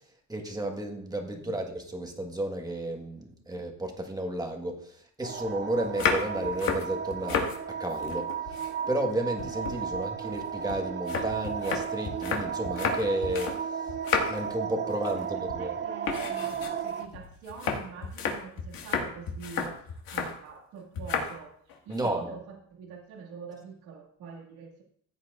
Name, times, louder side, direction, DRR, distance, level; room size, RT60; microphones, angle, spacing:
voice 1, 0.3-13.9 14.3-15.7 19.6-19.8 21.9-22.4, right 1 dB, 10° right, 2 dB, 1.5 m, -33 dB
sound 1, 5.2-17.1, right 7 dB, 30° right, 0.6 m, -34 dB
sound 2, 5.8-7.6 7.9-9.1 9.4-13.6 13.9-14.5 14.9-15.2 15.5-15.7 16.0-20.4 20.9-21.3 21.7-22.1, left 6 dB, 70° left, 1.9 m, -32 dB
voice 2, 15.1-24.8, right 6 dB, 85° right, -1 dB, 2.2 m, -45 dB
15.0 x 8.6 x 2.5 m, 0.64 s
cardioid pair, 130°, 36 cm